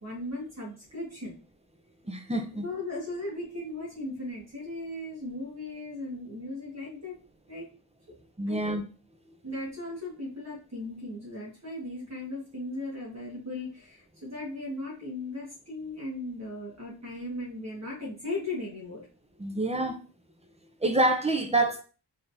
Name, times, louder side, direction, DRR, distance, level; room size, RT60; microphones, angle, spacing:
voice 1, 0.0-1.3 2.6-7.1 7.5-7.7 8.5-8.8 9.4-19.0, left 2 dB, 35° right, 1.6 m, -37 dB
voice 2, 2.0-2.7 8.4-8.8 19.4-20.0 20.8-21.8, right 2 dB, 15° right, 0.6 m, -26 dB
3.7 x 3.5 x 2.7 m
wide cardioid pair, 85°, 45 cm